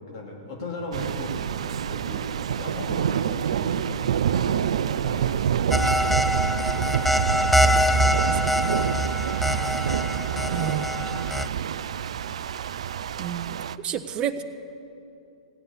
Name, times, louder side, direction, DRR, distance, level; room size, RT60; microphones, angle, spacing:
voice 1, 0.1-1.3 1.9-2.2 2.6-5.8, left 1 dB, 50° left, 0 dB, 2.7 m, -37 dB
sound 1, 0.9-13.8, right 9 dB, 65° right, 0.4 m, -27 dB
sound 2, 5.7-11.5, left 1 dB, 5° left, 0.3 m, -24 dB
voice 2, 8.2-8.7 10.5-11.2 13.2-14.4, right 9 dB, 30° right, 10 dB, 0.9 m, -31 dB
17.0 x 9.7 x 7.1 m, 2.8 s
hypercardioid pair, 115°, 3 cm